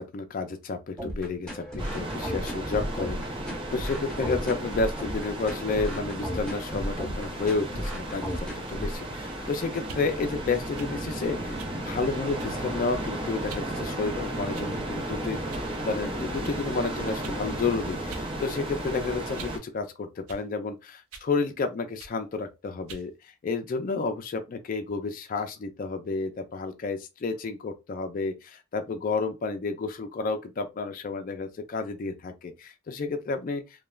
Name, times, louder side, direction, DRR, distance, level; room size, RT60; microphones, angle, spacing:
voice 1, 0.0-23.1 23.4-33.6, left 4 dB, 40° left, 0.3 m, -31 dB
sound 1, 1.0-9.0, equal, 5° left, 0.9 m, -34 dB
sound 2, 1.8-19.6, right 1 dB, 25° right, 0.5 m, -34 dB
sound 3, 9.8-10.1 10.8-11.0 11.6-11.8 12.4-12.7 13.5-13.7 14.5-14.9 15.5-15.7 16.4-16.6 17.2-17.4 18.1-18.3 18.7-19.6 20.3-20.5 21.1-21.3 22.0-22.2 22.9-23.1, right 4 dB, 85° right, 0.5 m, -44 dB
3.1 x 2.2 x 2.3 m
head